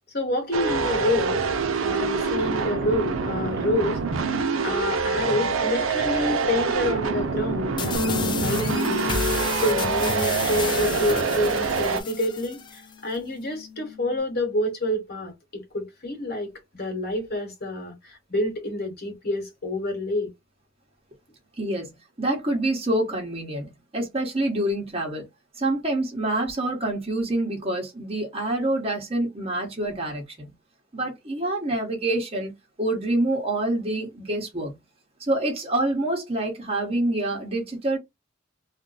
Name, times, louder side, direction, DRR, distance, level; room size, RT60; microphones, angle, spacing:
voice 1, 0.1-1.4 1.8-4.3 4.6-9.0 9.5-20.3, left 1 dB, 50° left, 1.2 m, -28 dB
sound 1, 0.5-12.0, right 4 dB, 85° right, 0.6 m, -26 dB
sound 2, 7.8-12.8, left 5 dB, 25° left, 0.3 m, -32 dB
sound 3, 7.9-12.5 12.8-14.2, left 3 dB, 70° right, 1.0 m, -35 dB
voice 2, 21.6-25.2 25.6-30.5 30.9-34.8 35.2-38.0, right 1 dB, 30° right, 1.1 m, -27 dB
2.5 x 2.2 x 3.9 m
head